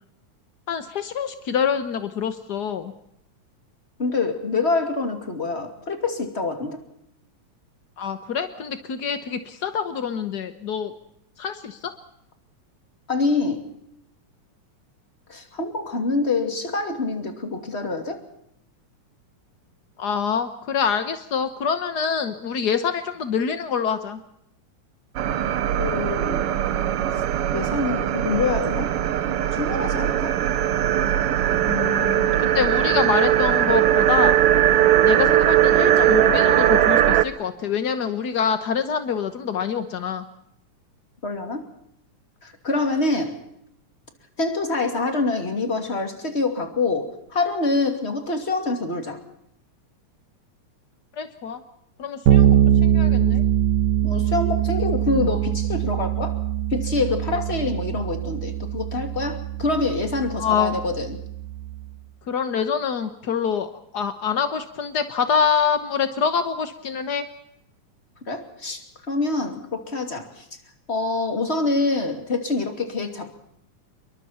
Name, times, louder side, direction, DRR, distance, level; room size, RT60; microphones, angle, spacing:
voice 1, 0.7-2.9 8.0-10.9 11.4-11.9 20.0-24.2 31.6-34.4 35.0-40.2 51.2-51.6 52.0-53.4 60.4-60.8 62.3-67.3, left 7 dB, 70° left, 9 dB, 0.9 m, -26 dB
voice 2, 4.0-6.8 13.1-13.7 15.3-18.2 25.8-26.5 27.1-27.2 27.5-28.9 29.5-30.3 41.2-41.6 42.4-43.4 44.4-49.2 54.0-56.4 56.7-61.2 68.3-68.8 69.1-70.4 70.9-73.4, left 3 dB, 20° left, 5 dB, 2.7 m, -26 dB
sound 1, 25.2-37.2, right 11 dB, 65° right, 1.5 m, -20 dB
Bass guitar, 52.3-61.9, right 10 dB, 90° right, 2.9 m, -22 dB
28.0 x 23.0 x 4.4 m, 0.73 s
omnidirectional pair, 3.5 m